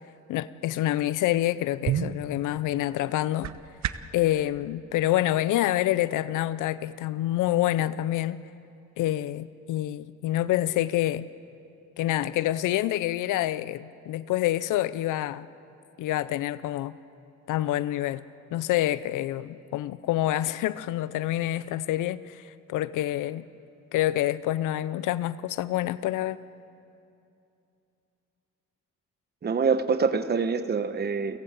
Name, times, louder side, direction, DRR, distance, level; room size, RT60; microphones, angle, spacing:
voice 1, 0.3-3.5 4.1-8.4 9.0-11.3 12.0-15.5 16.0-17.0 17.5-18.2 18.5-23.4 23.9-26.4, left 14 dB, 85° left, 16 dB, 0.6 m, -27 dB
sound 1, 1.7-4.2, right 10 dB, 60° right, 0.9 m, -33 dB
voice 2, 29.4-31.4, right 5 dB, 35° right, 10 dB, 1.1 m, -25 dB
30.0 x 16.5 x 8.3 m, 2.6 s
cardioid pair, 90°, 30 cm